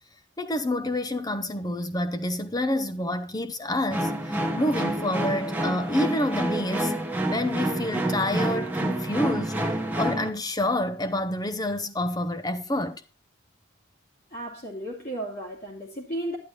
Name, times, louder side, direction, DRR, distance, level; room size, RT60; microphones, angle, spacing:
voice 1, 0.4-6.9 7.3-9.6 10.0-13.0, left 1 dB, 20° left, 0.7 m, -28 dB
sound 1, 3.9-10.3, right 1 dB, 10° right, 1.1 m, -28 dB
voice 2, 14.3-16.4, right 1 dB, 45° left, 2.6 m, -34 dB
11.0 x 10.0 x 3.2 m
head